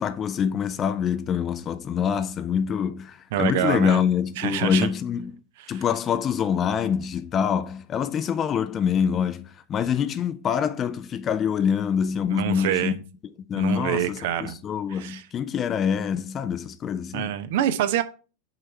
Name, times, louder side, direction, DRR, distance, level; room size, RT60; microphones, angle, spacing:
voice 1, 0.0-5.4 5.7-12.9 13.5-17.3, left 7 dB, 25° left, 0.6 m, -25 dB
voice 2, 3.3-4.0 4.4-4.9 5.7-5.8 12.3-13.0 13.5-14.6 14.9-15.2 17.1-18.0, right 10 dB, 50° right, 0.8 m, -26 dB
6.7 x 4.5 x 5.4 m
figure-of-eight pair, 90°, 0 cm